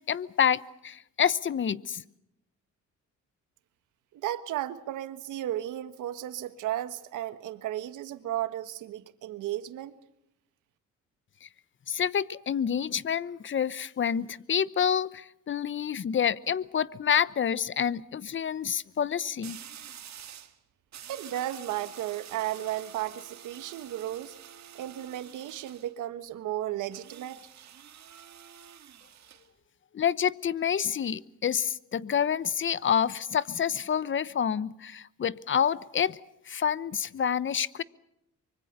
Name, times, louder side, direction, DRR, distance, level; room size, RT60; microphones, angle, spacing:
voice 1, 0.0-2.0 11.4-11.5 11.9-19.6 29.9-36.2 36.5-37.8, left 8 dB, 40° left, 0.9 m, -28 dB
voice 2, 4.1-9.9 21.1-24.3 24.7-27.4, right 13 dB, 85° right, 1.4 m, -34 dB
sound 1, 16.3-16.6 19.4-20.6 20.9-25.9 26.9-29.5, right 10 dB, 65° right, 2.0 m, -48 dB
24.5 x 24.0 x 6.7 m
cardioid pair, 90°, 30 cm